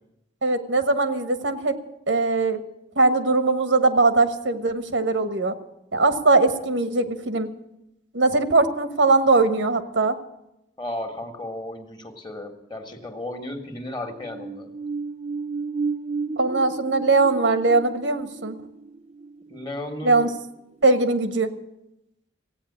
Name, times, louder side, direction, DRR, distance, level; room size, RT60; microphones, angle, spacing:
voice 1, 0.4-1.8 2.1-2.6 3.0-5.5 5.9-7.5 8.1-10.1 16.4-18.6 20.0-20.3 20.8-21.5, right 3 dB, 90° right, 9 dB, 1.3 m, -20 dB
voice 2, 10.8-14.7 19.5-20.3, left 1 dB, 25° left, 6 dB, 1.6 m, -34 dB
sound 1, 14.1-20.4 20.8-20.9, right 4 dB, 35° right, 0.6 m, -33 dB
16.0 x 9.0 x 8.6 m, 0.86 s
head